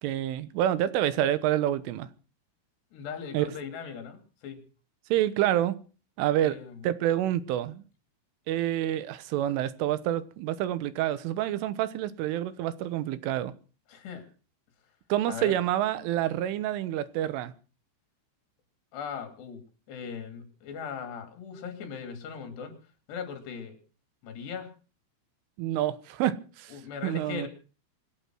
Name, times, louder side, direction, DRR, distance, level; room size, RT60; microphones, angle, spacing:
voice 1, 0.0-2.1 3.3-3.5 5.1-5.8 6.2-6.6 6.8-7.8 8.5-13.5 15.1-17.5 25.6-27.5, right 12 dB, 85° right, 3.6 m, -28 dB
voice 2, 2.9-4.6 6.4-6.8 13.9-14.3 15.3-15.6 18.9-19.6 19.9-22.7 23.1-23.8 24.2-24.7 26.7-27.5, left 6 dB, 60° left, 4.7 m, -39 dB
25.5 x 8.8 x 6.2 m
omnidirectional pair, 5.6 m